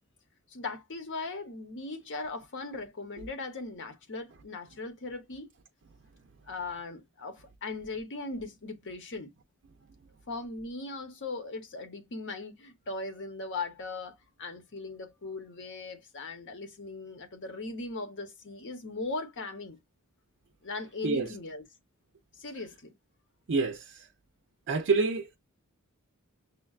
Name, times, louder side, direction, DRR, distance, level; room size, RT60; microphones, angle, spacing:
voice 1, 0.5-5.5 6.5-9.3 10.3-19.8 20.6-21.6 22.4-22.9, left 3 dB, 55° left, 0.9 m, -39 dB
voice 2, 23.5-23.8 24.7-25.4, right 4 dB, 55° right, 0.5 m, -27 dB
6.3 x 2.2 x 2.4 m
head